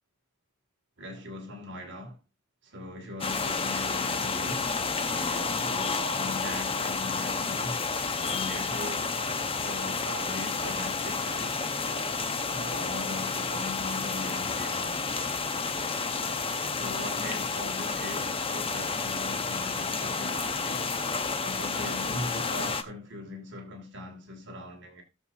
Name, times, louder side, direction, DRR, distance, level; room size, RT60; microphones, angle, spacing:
voice 1, 1.0-2.2 2.6-4.7 5.1-7.8 8.2-9.1 9.6-11.6 12.4-15.1 16.4-20.9 21.4-25.0, left 1 dB, 60° right, 2.3 m, -40 dB
sound 1, 3.2-22.8, left 4 dB, 25° left, 0.8 m, -30 dB
18.0 x 6.7 x 2.7 m
head